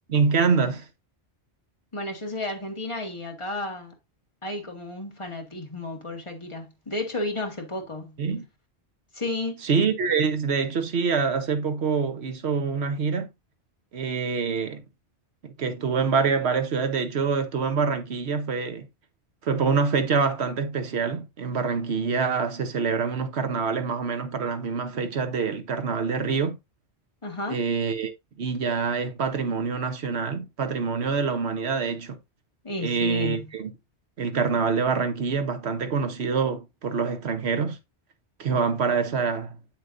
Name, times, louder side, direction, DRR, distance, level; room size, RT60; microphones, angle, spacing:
voice 1, 0.1-0.9 8.2-8.5 9.6-13.3 13.9-14.8 15.4-18.9 19.4-26.6 27.5-28.1 28.4-32.2 32.8-33.7 34.2-37.8 38.4-39.6, right 5 dB, 75° right, 1.3 m, -25 dB
voice 2, 1.9-3.9 4.4-8.2 9.1-9.6 27.2-27.6 32.6-33.5, left 2 dB, 30° left, 1.8 m, -32 dB
8.0 x 7.2 x 2.6 m
omnidirectional pair, 1.1 m